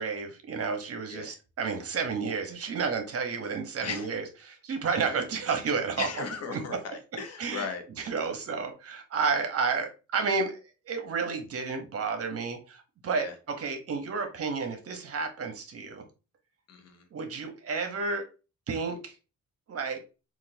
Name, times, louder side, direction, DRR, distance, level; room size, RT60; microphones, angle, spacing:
voice 1, 0.0-6.1 6.5-6.6 7.4-7.7 8.0-16.0 17.1-18.3 18.7-19.2 19.7-20.0, right 5 dB, 50° right, 5 dB, 0.9 m, -31 dB
voice 2, 3.8-4.1 4.9-5.2 6.0-8.1 13.2-13.3 16.7-17.0, left 5 dB, 55° left, 6 dB, 0.9 m, -37 dB
3.9 x 2.5 x 2.6 m, 0.31 s
cardioid pair, 90°, 30 cm